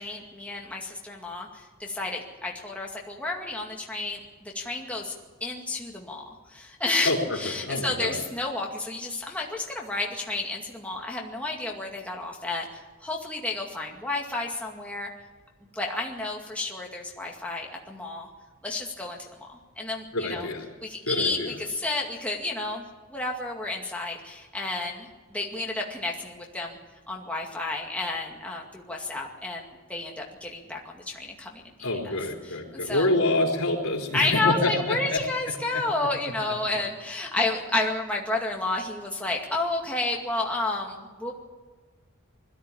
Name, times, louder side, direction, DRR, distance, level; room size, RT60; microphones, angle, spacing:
voice 1, 0.0-5.1 5.4-15.1 15.7-18.3 18.6-20.5 20.8-22.8 23.1-26.8 27.1-31.6 32.4-33.1 34.1-41.3, left 2 dB, 5° left, -1 dB, 2.2 m, -31 dB
voice 2, 7.0-8.2 20.1-20.7 21.1-21.6 31.8-35.2 35.7-35.8, left 2 dB, 85° left, 0 dB, 4.0 m, -27 dB
21.5 x 14.0 x 8.7 m, 1.4 s
head